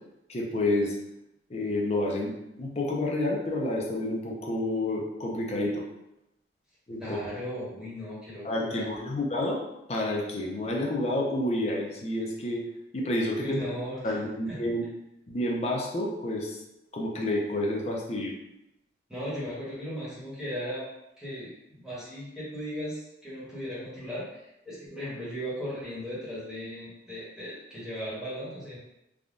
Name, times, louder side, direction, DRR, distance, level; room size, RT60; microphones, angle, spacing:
voice 1, 0.3-0.9 1.5-5.8 6.9-7.2 8.4-9.6 9.9-12.6 12.9-13.7 14.0-14.9 15.3-16.6 16.9-18.3, left 1 dB, 35° left, -1 dB, 0.5 m, -29 dB
voice 2, 7.0-8.9 13.4-14.6 19.1-20.9 21.2-24.3 24.6-28.8, equal, 5° right, -10 dB, 1.1 m, -37 dB
3.5 x 2.2 x 2.5 m, 0.87 s
head